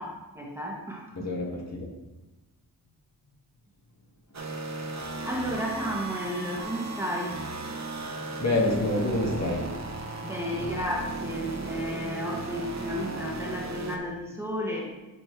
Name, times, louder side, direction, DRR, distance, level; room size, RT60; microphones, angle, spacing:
voice 1, 0.0-1.3 5.2-7.5 10.2-15.0, equal, 5° right, -3 dB, 1.8 m, -33 dB
voice 2, 1.2-1.9 8.4-9.8, left 2 dB, 40° left, -2 dB, 2.0 m, -27 dB
sound 1, 4.3-14.0, right 3 dB, 40° right, 1.1 m, -36 dB
11.0 x 4.2 x 3.4 m, 1.1 s
cardioid pair, 50°, 41 cm